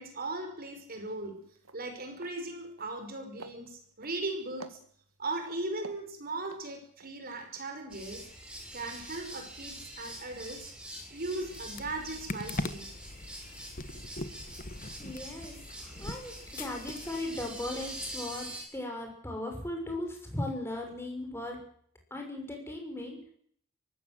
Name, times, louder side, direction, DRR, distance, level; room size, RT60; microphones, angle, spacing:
voice 1, 0.0-1.4 1.7-4.8 5.2-8.3 8.7-10.7 11.1-12.9, right 2 dB, 45° right, 5 dB, 5.6 m, -38 dB
sound 1, 1.1-1.3 1.6-1.8 2.2-2.4 2.7-3.1 3.4-4.2 4.6-5.4 5.8-7.1 7.5-7.6, right 3 dB, 70° right, 2.0 m, -50 dB
sound 2, 7.9-18.6, right 1 dB, 5° right, 6.7 m, -45 dB
sound 3, 11.4-18.2, left 2 dB, 40° left, 1.4 m, -42 dB
voice 2, 15.0-21.6 22.1-23.3, left 1 dB, 10° left, 2 dB, 6.3 m, -38 dB
24.0 x 16.0 x 7.9 m, 0.63 s
head